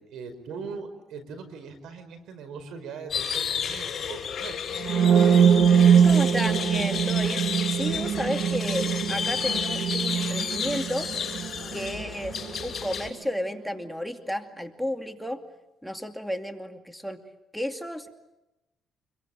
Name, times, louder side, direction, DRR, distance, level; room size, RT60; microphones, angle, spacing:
voice 1, 0.0-4.8, right 5 dB, 80° right, 10 dB, 5.1 m, -40 dB
sound 1, 3.1-13.1, left 7 dB, 50° left, 6.6 m, -32 dB
sound 2, 4.8-12.6, right 7 dB, 65° right, 2.1 m, -22 dB
voice 2, 6.0-11.1 11.7-15.4 15.8-17.2 17.5-18.2, equal, ahead, 5 dB, 2.5 m, -32 dB
28.5 x 23.0 x 9.2 m, 0.94 s
cardioid pair, 90°, 0 cm